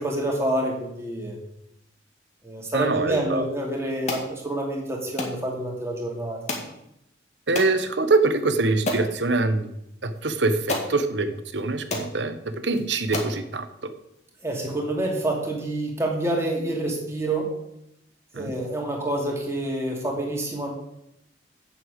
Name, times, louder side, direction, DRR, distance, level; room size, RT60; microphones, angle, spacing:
voice 1, 0.0-1.4 2.4-6.4 14.4-17.5 18.3-20.7, right 1 dB, 15° right, -1 dB, 2.5 m, -27 dB
voice 2, 2.7-3.4 7.5-9.7 10.0-13.7 18.3-18.5, right 3 dB, 70° right, 10 dB, 1.0 m, -24 dB
sound 1, 4.1-4.3 5.2-5.4 6.5-6.7 7.5-7.7 8.3-8.4 8.9-9.1 10.1-10.2 10.7-10.9 11.6-11.7 11.9-12.1 12.7-12.8 13.1-13.4, left 2 dB, 40° left, 2.0 m, -29 dB
8.0 x 6.9 x 8.0 m, 0.81 s
head